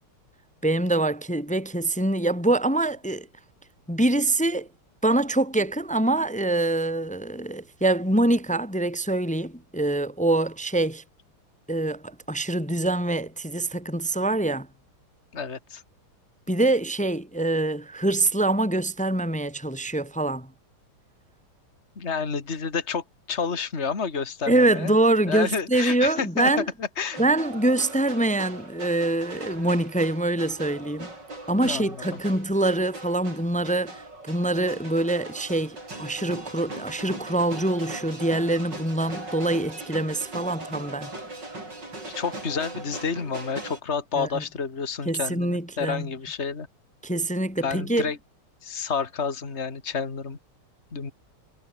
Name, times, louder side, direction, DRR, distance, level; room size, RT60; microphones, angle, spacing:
voice 1, 0.6-3.3 3.9-4.7 5.0-11.0 11.7-14.7 16.5-20.5 24.5-26.7 27.2-31.1 31.5-41.1 44.2-44.4 45.0-46.1 47.0-48.1, right 2 dB, 5° left, 0.8 m, -24 dB
voice 2, 15.3-15.8 22.0-24.9 25.3-26.5 27.0-27.2 31.6-31.9 42.1-46.7 47.6-48.2 48.6-50.4 50.9-51.1, left 5 dB, 30° left, 2.7 m, -29 dB
sound 1, 27.0-43.8, right 2 dB, 50° right, 8.5 m, -39 dB
omnidirectional pair, 2.4 m